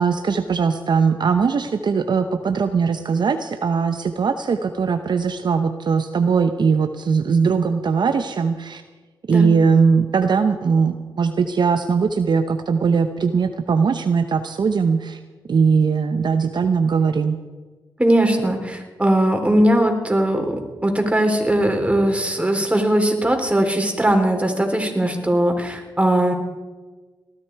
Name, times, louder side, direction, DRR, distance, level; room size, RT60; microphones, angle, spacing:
voice 1, 0.0-8.8 9.3-15.2 15.5-17.4, right 5 dB, 60° right, 8 dB, 0.9 m, -20 dB
voice 2, 18.0-26.3, right 1 dB, 15° right, 3 dB, 3.8 m, -19 dB
19.0 x 13.0 x 4.7 m, 1.3 s
cardioid pair, 50°, 9 cm